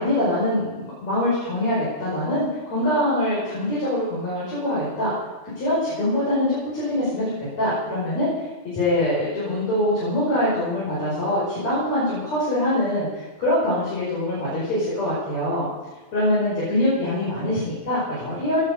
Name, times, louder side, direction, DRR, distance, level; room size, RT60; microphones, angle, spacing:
voice 1, 0.0-5.1 5.6-8.3 8.6-15.7 16.1-18.6, left 1 dB, 60° left, -9 dB, 6.6 m, -24 dB
16.5 x 9.9 x 6.8 m, 1.2 s
omnidirectional pair, 3.4 m